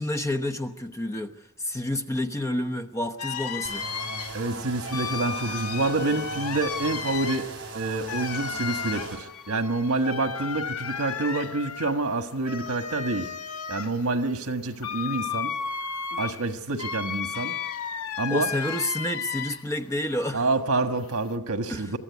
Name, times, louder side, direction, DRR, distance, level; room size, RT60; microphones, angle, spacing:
voice 1, 0.0-1.4 1.6-3.9 18.3-20.5 21.7-21.9, left 1 dB, 15° left, 7 dB, 1.0 m, -29 dB
sound 1, 3.2-19.8 20.2-21.3, left 6 dB, 85° left, 0.8 m, -34 dB
sound 2, 3.6-9.2, right 3 dB, 55° right, 4.8 m, -39 dB
voice 2, 4.3-7.5 7.7-13.3 13.7-15.5 16.2-17.5 18.2-18.5 20.3-22.0, right 2 dB, 85° right, 7 dB, 1.5 m, -27 dB
23.0 x 14.5 x 9.4 m, 0.96 s
head